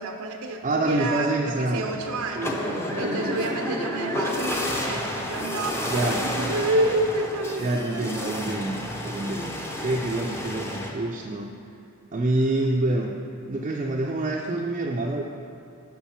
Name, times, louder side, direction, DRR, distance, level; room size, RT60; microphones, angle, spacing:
voice 1, 0.0-8.4, right 2 dB, 80° right, 4 dB, 0.6 m, -29 dB
voice 2, 0.6-3.3 5.9-6.3 7.6-8.8 9.0-11.5 12.1-13.1 13.5-15.2, right 2 dB, 35° right, -1 dB, 0.4 m, -27 dB
sound 1, 1.8-10.9, left 1 dB, 10° left, 0.7 m, -31 dB
7.1 x 6.1 x 5.7 m, 2.5 s
head